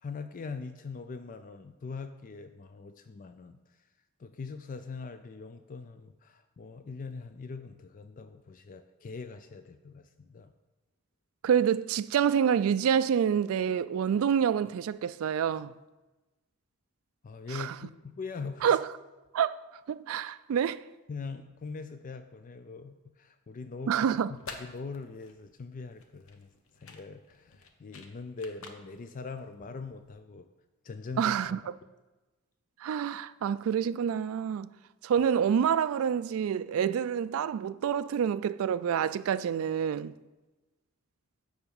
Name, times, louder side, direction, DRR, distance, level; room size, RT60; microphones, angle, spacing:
voice 1, 0.0-3.6 4.2-10.5 17.2-18.8 21.1-24.1 24.6-26.5 26.8-30.5 30.8-31.6, left 4 dB, 40° left, 0.4 m, -42 dB
voice 2, 11.4-15.7 17.5-17.8 18.6-18.8 19.3-19.6 19.9-20.8 23.9-24.3 31.2-31.6 32.8-34.7 35.0-40.1, right 8 dB, 65° right, 0.3 m, -27 dB
sound 1, 24.2-30.2, left 4 dB, 65° left, 1.0 m, -50 dB
10.5 x 4.0 x 7.0 m
head